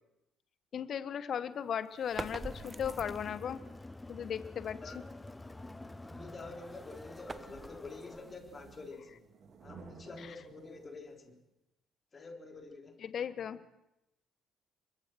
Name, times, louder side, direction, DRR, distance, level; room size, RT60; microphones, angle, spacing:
voice 1, 0.7-3.6 4.1-4.8 13.0-13.6, left 8 dB, 50° left, 15 dB, 1.1 m, -36 dB
sound 1, 1.8-11.2, right 5 dB, 50° right, 2.7 m, -58 dB
sound 2, 2.0-3.6 6.3-9.3, right 3 dB, 25° right, 1.0 m, -47 dB
Crowd, 2.1-8.4, left 2 dB, 15° left, 0.7 m, -48 dB
voice 2, 6.1-9.2 9.6-11.4 12.1-13.0, left 3 dB, 35° left, 3 dB, 3.7 m, -47 dB
26.5 x 23.0 x 4.6 m, 0.90 s
figure-of-eight pair, 50°, 0 cm